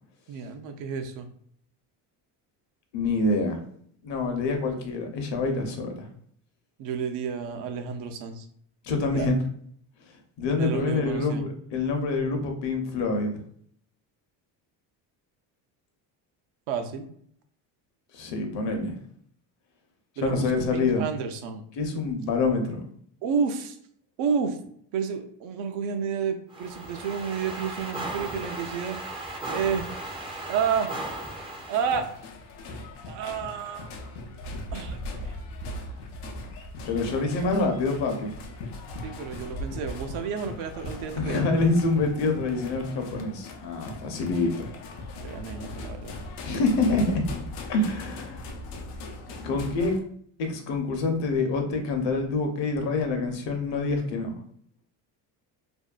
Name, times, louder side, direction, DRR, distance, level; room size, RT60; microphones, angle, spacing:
voice 1, 0.3-1.3 6.8-8.5 9.1-9.3 10.6-11.4 16.7-17.1 20.2-21.6 23.2-23.8 24.2-24.6 24.9-29.0 29.4-29.9 30.5-30.9 31.7-32.1 33.1-33.9 34.7-35.3 39.0-41.5 45.2-46.2, right 6 dB, 70° right, 6 dB, 0.6 m, -30 dB
voice 2, 2.9-3.6 4.0-6.1 8.8-9.4 10.4-13.4 18.1-18.9 20.2-21.1 21.8-22.8 36.8-38.3 41.2-44.5 46.4-47.2 47.7-48.5 49.4-49.9 50.4-54.4, left 3 dB, 60° left, 4 dB, 0.8 m, -26 dB
sound 1, 26.5-32.2, right 2 dB, 10° right, 0.4 m, -36 dB
sound 2, 31.7-50.0, left 1 dB, 90° left, 0.6 m, -39 dB
2.6 x 2.1 x 2.3 m, 0.63 s
supercardioid pair, 85°, 49 cm